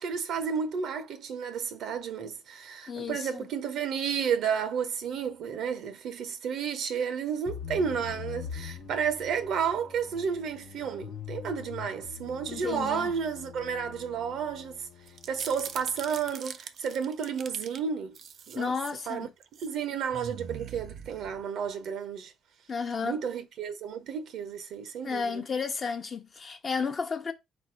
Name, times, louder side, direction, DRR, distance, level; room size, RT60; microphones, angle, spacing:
voice 1, 0.0-14.9 15.3-18.2 18.5-18.7 19.1-19.3 19.6-22.3 23.0-25.4, right 7 dB, 80° right, 0.8 m, -32 dB
voice 2, 2.9-3.5 12.5-13.1 18.6-19.3 22.7-23.2 25.0-27.3, left 5 dB, 40° left, 0.7 m, -32 dB
sound 1, 7.5-16.3, left 8 dB, 75° left, 0.8 m, -44 dB
sound 2, 15.1-17.8 18.2-19.0 19.4-19.8 20.1-21.7, right 7 dB, 60° right, 0.4 m, -43 dB
4.2 x 2.6 x 4.5 m
cardioid pair, 90°, 0 cm